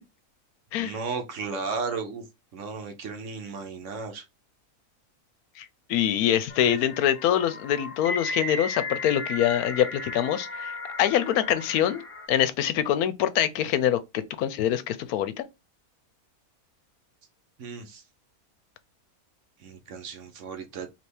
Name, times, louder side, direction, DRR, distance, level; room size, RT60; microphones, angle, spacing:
voice 1, 0.8-2.2 2.5-4.2 17.6-18.0 19.6-20.9, right 4 dB, 60° right, 1.0 m, -34 dB
voice 2, 5.6-12.0 12.3-15.4, left 11 dB, 85° left, 1.1 m, -25 dB
sound 1, 6.5-12.3, left 2 dB, 35° left, 0.6 m, -35 dB
3.3 x 2.8 x 4.3 m
omnidirectional pair, 1.5 m